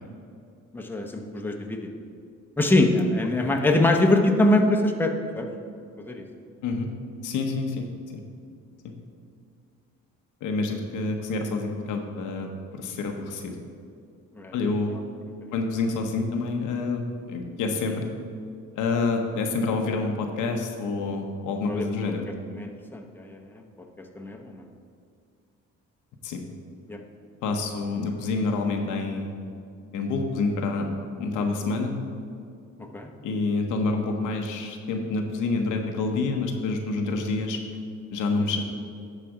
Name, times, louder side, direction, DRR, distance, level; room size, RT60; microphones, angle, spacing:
voice 1, 0.7-1.9 2.6-5.5 6.0-6.2 14.3-14.5 17.9-18.0 21.7-21.9 22.5-23.6 24.2-24.6 26.9-27.0 28.6-28.8 32.9-33.1 38.4-38.5, left 1 dB, 5° left, 2 dB, 0.9 m, -23 dB
voice 2, 7.2-7.9 8.1-8.2 8.8-8.9 10.4-13.5 14.5-15.0 15.5-18.1 18.7-22.2 26.2-26.4 27.4-29.3 29.9-30.9 31.2-31.9 33.2-37.6 38.1-38.6, left 3 dB, 90° left, 3 dB, 0.9 m, -27 dB
11.5 x 4.2 x 4.9 m, 2.4 s
cardioid pair, 90°, 30 cm